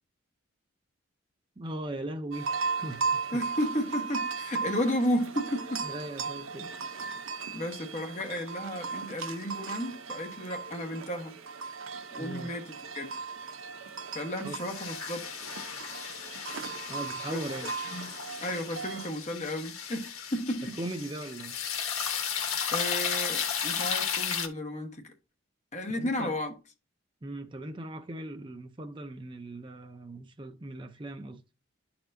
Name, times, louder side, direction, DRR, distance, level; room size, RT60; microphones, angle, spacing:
voice 1, 1.6-3.2 5.8-6.7 12.2-12.6 14.4-14.6 16.9-17.7 20.6-21.6 26.0-26.4 27.2-31.4, right 1 dB, 25° right, 0.5 m, -39 dB
sound 1, 2.3-19.1, right 5 dB, 75° right, 0.7 m, -37 dB
voice 2, 3.3-5.9 7.5-11.4 12.1-13.2 14.1-15.5 17.3-17.4 17.9-18.1 18.4-20.8 22.7-25.1 25.7-26.5, equal, 35° left, 1.1 m, -33 dB
sound 2, 14.6-24.5, left 7 dB, 90° left, 1.3 m, -34 dB
11.0 x 4.3 x 2.6 m
head